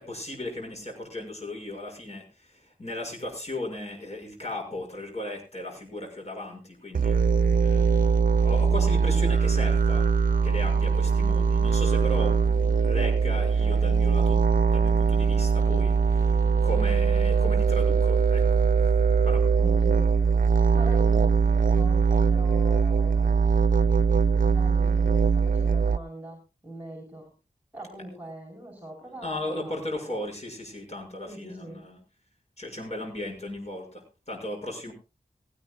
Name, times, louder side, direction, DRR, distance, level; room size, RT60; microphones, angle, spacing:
voice 1, 0.0-7.2 7.6-10.1 10.4-14.4 14.7-18.4 19.2-19.4 29.1-32.0 32.6-34.9, left 1 dB, 45° left, 1 dB, 6.6 m, -36 dB
sound 1, 6.9-26.0, right 5 dB, 60° right, 0.6 m, -22 dB
voice 2, 19.6-20.1 20.7-27.3 27.7-30.1 31.3-31.8, right 1 dB, 10° right, 2 dB, 4.7 m, -42 dB
18.5 x 17.0 x 2.4 m, 0.30 s
wide cardioid pair, 75°, 15 cm